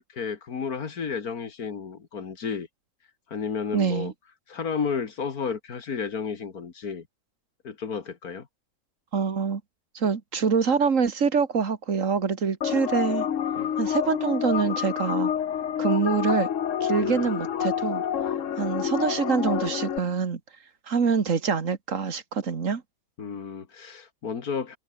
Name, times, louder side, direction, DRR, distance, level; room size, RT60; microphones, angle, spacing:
voice 1, 0.0-2.7 3.3-4.1 4.5-7.1 7.6-8.5 13.6-13.7 16.9-17.3 23.2-24.8, left 6 dB, 85° left, 2.5 m, -32 dB
voice 2, 3.7-4.1 9.1-9.6 9.9-13.3 13.8-15.3 15.8-16.5 16.8-18.0 18.6-20.4 20.9-22.8, right 5 dB, 60° right, 2.1 m, -25 dB
sound 1, 12.6-20.0, left 9 dB, 60° left, 1.3 m, -28 dB
sound 2, 13.6-20.1, right 1 dB, 35° right, 8.2 m, -57 dB
omnidirectional pair, 1.5 m